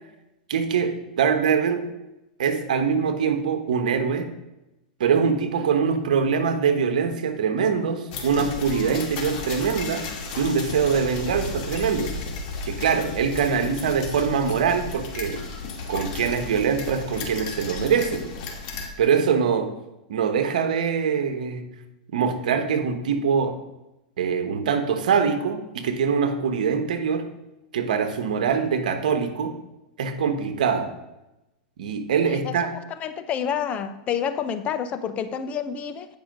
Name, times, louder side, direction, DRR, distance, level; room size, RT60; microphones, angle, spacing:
voice 1, 0.5-1.8 2.4-4.3 5.0-10.0 10.4-12.1 12.7-15.4 15.9-18.3 19.0-19.7 20.1-21.7 22.1-23.6 24.2-27.3 27.7-29.5 30.0-30.9 31.8-32.7, right 6 dB, 80° right, 8 dB, 1.1 m, -23 dB
sound 1, 8.1-18.9, left 4 dB, 50° left, 2.3 m, -34 dB
voice 2, 33.0-36.1, left 8 dB, 35° left, 10 dB, 0.7 m, -28 dB
9.2 x 5.5 x 5.2 m, 0.96 s
hypercardioid pair, 120°, 4 cm